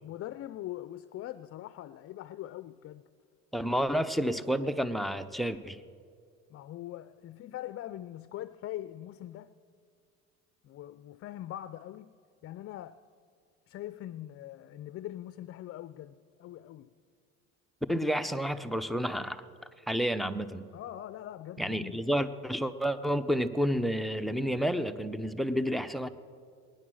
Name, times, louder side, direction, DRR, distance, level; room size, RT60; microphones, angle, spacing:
voice 1, 0.0-3.0 6.5-9.5 10.6-12.1 12.4-13.0 13.7-16.9 20.7-22.1, left 13 dB, 45° left, 0.5 m, -42 dB
voice 2, 3.5-5.8 17.9-19.4 19.9-20.7 21.6-26.1, equal, ahead, 0.6 m, -30 dB
19.5 x 10.0 x 6.3 m
cardioid pair, 105°, 31 cm